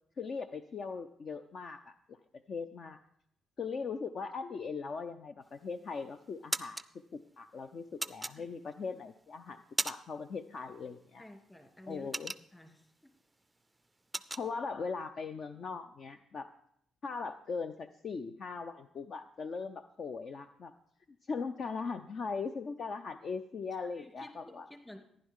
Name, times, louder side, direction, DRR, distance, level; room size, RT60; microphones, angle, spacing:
voice 1, 0.2-2.2 2.5-3.0 3.6-6.8 7.1-11.2 11.9-12.3 14.3-16.5 17.0-20.7 21.3-24.7, left 5 dB, 50° left, 9 dB, 0.5 m, -39 dB
sound 1, 5.5-5.9 6.2-6.9 8.0-8.8 9.3-10.3 10.5-10.8 11.2-12.9 13.2-13.4 13.7-14.5, right 2 dB, 15° right, 0.4 m, -37 dB
voice 2, 11.2-12.1 12.5-12.9 23.8-25.0, left 1 dB, 15° left, 4 dB, 2.5 m, -52 dB
14.5 x 10.5 x 3.7 m, 0.68 s
cardioid pair, 90°, 0 cm